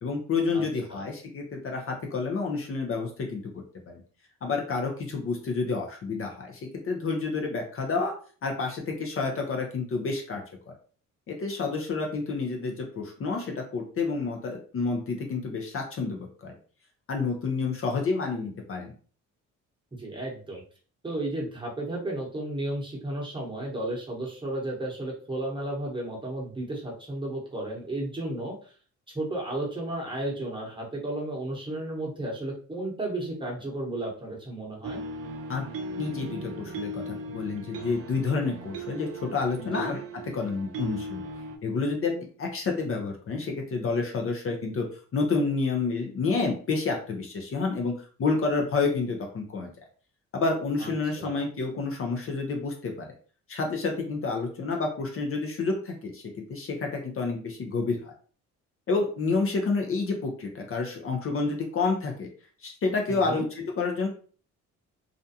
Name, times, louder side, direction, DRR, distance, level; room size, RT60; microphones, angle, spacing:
voice 1, 0.0-3.5 3.9-4.0 4.4-8.1 8.4-10.4 11.3-16.6 17.1-18.9 35.5-35.7 36.0-41.2 41.6-44.9 45.1-49.7 50.3-53.1 53.5-56.2 56.5-58.1 58.9-62.3 62.6-64.1, left 4 dB, 45° left, 2 dB, 0.6 m, -29 dB
voice 2, 20.0-20.6 21.0-28.7 29.1-35.0 39.6-40.0 50.8-51.4 63.1-63.4, right 1 dB, 15° right, -3 dB, 1.0 m, -33 dB
sound 1, 34.8-41.6, right 2 dB, 50° right, 0.4 m, -38 dB
2.5 x 2.2 x 2.6 m, 0.41 s
cardioid pair, 90°, 30 cm